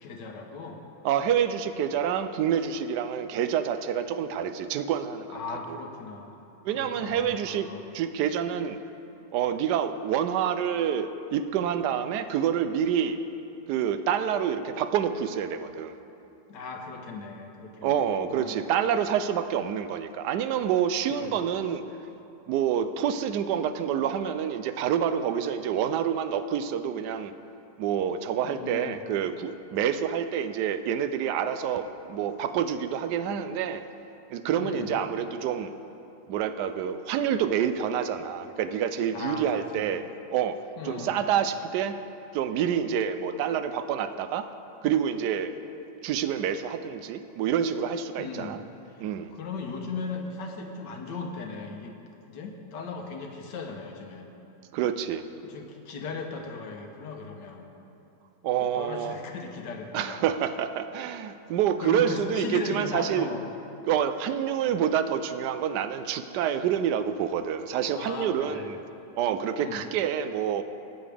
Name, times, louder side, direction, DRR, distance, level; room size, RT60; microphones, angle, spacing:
voice 1, 0.0-0.8 5.3-6.5 6.7-7.8 16.5-18.0 18.3-18.7 21.1-21.4 28.4-29.0 34.6-34.9 39.1-39.9 40.8-41.2 48.2-48.6 48.9-49.1 49.3-51.9 52.3-54.3 55.4-57.7 58.6-60.2 61.8-63.5 67.9-68.7 69.6-69.9, left 4 dB, 75° left, 3 dB, 1.6 m, -37 dB
voice 2, 1.0-5.4 5.7-5.8 6.6-7.7 7.9-8.8 9.3-13.2 13.7-15.9 17.8-21.8 22.5-27.3 27.8-33.8 34.3-35.7 36.3-40.0 40.3-40.6 40.8-42.0 42.3-44.5 44.8-45.5 46.0-48.6 49.0-49.3 54.7-55.2 58.4-59.2 59.9-63.3 63.9-68.8 69.2-70.6, right 8 dB, 75° right, 11 dB, 1.1 m, -27 dB
15.5 x 9.3 x 3.4 m, 2.8 s
omnidirectional pair, 1.9 m